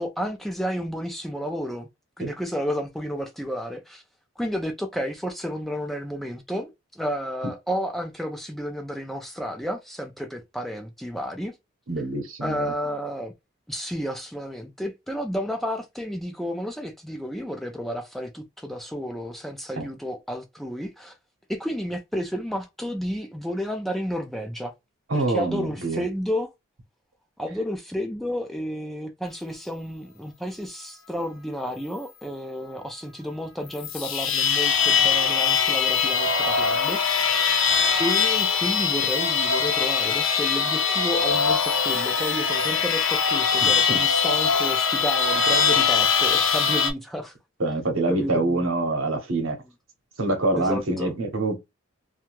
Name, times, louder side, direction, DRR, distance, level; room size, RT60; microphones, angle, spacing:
voice 1, 0.0-1.9 2.2-4.0 4.4-11.5 12.4-13.3 13.7-21.2 21.5-24.7 25.1-26.5 27.4-37.5 38.0-47.3 48.1-48.4 50.5-51.1, equal, ahead, 0.4 m, -31 dB
voice 2, 11.9-12.7 19.8-19.9 25.1-26.0 43.6-44.0 47.6-49.6 50.2-51.6, right 2 dB, 75° right, 0.9 m, -25 dB
sound 1, 33.7-46.9, left 6 dB, 80° left, 0.7 m, -22 dB
2.7 x 2.3 x 2.9 m
head